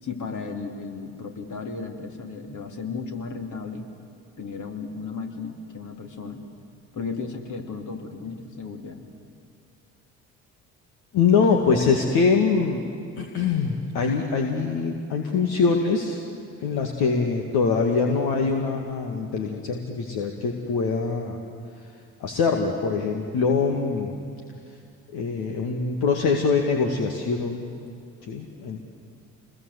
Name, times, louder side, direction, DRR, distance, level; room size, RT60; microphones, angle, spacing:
voice 1, 0.0-3.9 4.4-6.4 6.9-9.0, left 4 dB, 45° left, 3 dB, 3.1 m, -34 dB
voice 2, 11.1-12.8 13.2-16.3 16.6-21.4 22.2-24.1 25.1-27.6 28.3-28.8, left 5 dB, 60° left, 2 dB, 2.1 m, -23 dB
27.5 x 21.0 x 8.2 m, 2.4 s
hypercardioid pair, 55°, 41 cm